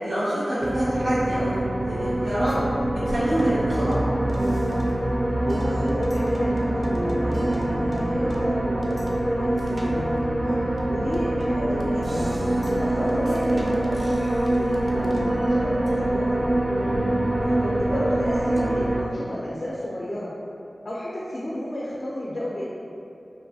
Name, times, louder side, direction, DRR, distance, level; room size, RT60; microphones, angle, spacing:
voice 1, 0.0-1.5 1.9-2.5 3.1-3.9 10.4-10.6, equal, 85° right, -12 dB, 0.9 m, -26 dB
sound 1, 0.6-19.0, right 1 dB, 35° right, 0.3 m, -24 dB
voice 2, 5.4-10.1 10.9-12.3 12.7-16.7 17.6-20.4 20.8-22.7, left 1 dB, 60° left, -7 dB, 0.3 m, -32 dB
2.4 x 2.3 x 2.6 m, 2.6 s
wide cardioid pair, 70°, 0 cm